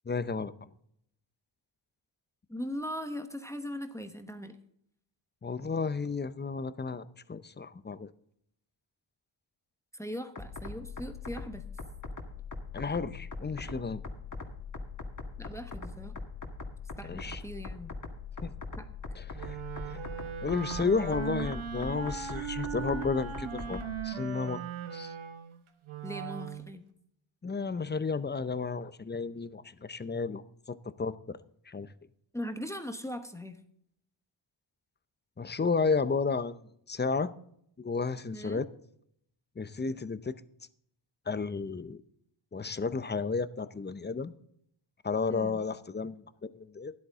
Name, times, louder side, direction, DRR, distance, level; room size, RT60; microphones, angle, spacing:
voice 1, 0.1-0.7 5.4-8.1 12.7-14.0 17.0-17.4 18.4-18.5 19.1-19.6 19.8-20.0 20.4-24.6 24.9-25.1 27.4-30.4 30.7-31.4 31.7-31.9 35.4-36.6 36.9-37.3 37.8-38.6 39.6-40.4 41.3-42.0 42.5-44.3 45.0-46.9, left 4 dB, 20° left, 0.6 m, -32 dB
voice 2, 2.5-4.5 9.9-11.6 15.4-16.2 17.0-17.9 18.8-18.9 26.0-26.8 32.3-33.6 38.3-38.6 45.3-45.6, equal, 5° left, 1.1 m, -39 dB
sound 1, 10.4-24.0, left 3 dB, 35° left, 1.9 m, -41 dB
Wind instrument woodwind instrument, 19.3-26.7, right 9 dB, 70° right, 1.3 m, -39 dB
12.5 x 11.0 x 3.6 m
cardioid pair, 75°, 50 cm